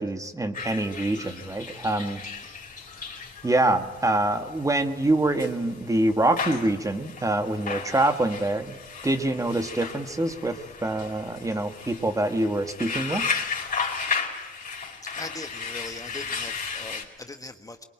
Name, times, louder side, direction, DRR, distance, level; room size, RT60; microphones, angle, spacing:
voice 1, 0.0-2.2 3.4-8.8 9.0-13.3, right 2 dB, 15° right, 7 dB, 1.8 m, -25 dB
sound 1, 0.5-17.0, left 5 dB, 40° left, 4.8 m, -35 dB
voice 2, 15.0-17.8, left 2 dB, 15° left, 6 dB, 1.4 m, -40 dB
23.5 x 22.5 x 9.0 m, 1.1 s
cardioid pair, 90°, 20 cm